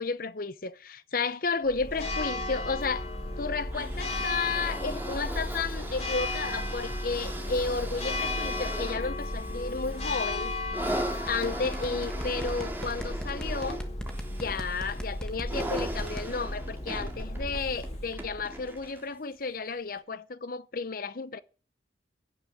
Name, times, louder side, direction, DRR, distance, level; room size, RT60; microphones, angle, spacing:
voice 1, 0.0-3.1 3.4-10.9 11.3-13.8 14.3-21.4, left 4 dB, 50° left, 0.8 m, -32 dB
Church bell, 1.7-18.9, left 1 dB, 35° left, 2.8 m, -35 dB
sound 1, 3.7-19.2 20.0-20.1, right 1 dB, 10° right, 2.2 m, -39 dB
sound 2, 11.3-16.2, equal, 5° left, 1.4 m, -40 dB
16.5 x 6.4 x 9.2 m
head